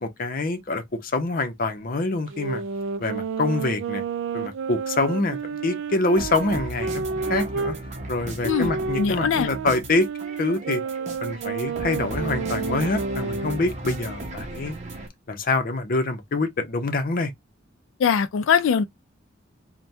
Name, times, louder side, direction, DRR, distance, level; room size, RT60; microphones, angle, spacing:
voice 1, 0.0-2.6 3.0-4.0 4.3-7.7 8.1-10.1 10.4-10.8 11.2-14.8 15.3-17.3, left 2 dB, 50° left, 0.6 m, -25 dB
sound 1, 2.3-7.8 8.4-13.6, right 5 dB, 80° right, 0.3 m, -30 dB
sound 2, 6.2-15.1, right 1 dB, 40° right, 0.8 m, -35 dB
voice 2, 9.0-9.5 18.0-18.8, left 7 dB, 90° left, 0.3 m, -21 dB
3.3 x 2.2 x 2.6 m
head